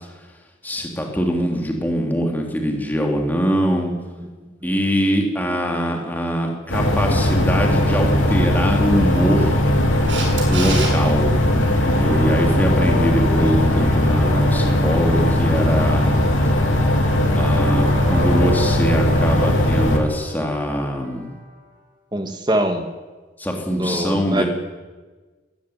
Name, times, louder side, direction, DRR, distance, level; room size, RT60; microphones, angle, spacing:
voice 1, 0.6-3.9 4.6-9.6 10.5-11.3 11.5-16.1 17.3-21.3 23.4-24.5, equal, 10° left, 1 dB, 3.1 m, -23 dB
voice 2, 3.9-4.7 22.1-22.9 23.7-24.5, right 1 dB, 20° right, 6 dB, 1.7 m, -24 dB
sound 1, 6.7-20.0, left 1 dB, 85° left, 3.7 m, -18 dB
Camera, 10.1-10.9 17.6-17.7, right 3 dB, 70° right, 7.8 m, -26 dB
sound 2, 12.0-21.6, left 3 dB, 50° right, 4.7 m, -34 dB
20.5 x 14.5 x 9.6 m, 1.3 s
head